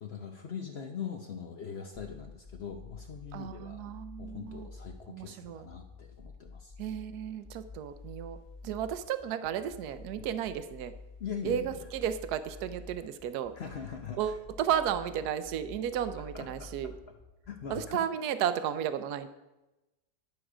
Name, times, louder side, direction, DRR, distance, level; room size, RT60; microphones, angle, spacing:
voice 1, 0.0-3.8 4.2-6.7 10.1-10.3 11.2-11.9 13.6-14.3 16.3-16.7 17.5-18.0, left 7 dB, 55° left, 4 dB, 0.7 m, -41 dB
sound 1, 1.9-17.9, left 3 dB, 15° left, 1.5 m, -49 dB
voice 2, 3.3-4.7 5.1-5.7 6.8-8.4 8.6-10.9 11.4-13.5 14.2-16.9 17.7-19.3, right 9 dB, 75° right, 11 dB, 1.1 m, -33 dB
11.0 x 6.4 x 4.9 m, 1.0 s
omnidirectional pair, 1.8 m